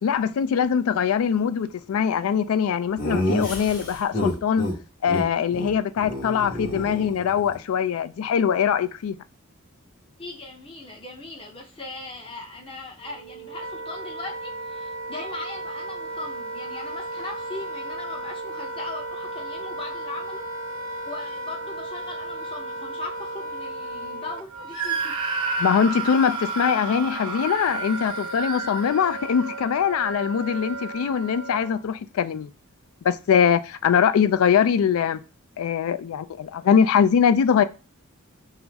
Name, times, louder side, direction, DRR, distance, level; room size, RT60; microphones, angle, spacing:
voice 1, 0.0-4.7 5.0-9.2 25.6-32.5 33.0-35.2 35.6-37.6, left 7 dB, 75° left, 0.3 m, -22 dB
Laughter, 3.0-4.7 5.1-5.2 5.5-5.7 6.0-7.5, left 1 dB, 40° left, 1.2 m, -28 dB
voice 2, 10.2-20.5 21.0-25.1, left 3 dB, 25° left, 0.7 m, -39 dB
Wind instrument woodwind instrument, 13.0-31.8, right 2 dB, 80° right, 0.6 m, -35 dB
Screaming, 24.7-29.6, right 3 dB, 20° right, 0.6 m, -31 dB
5.5 x 2.0 x 3.4 m
head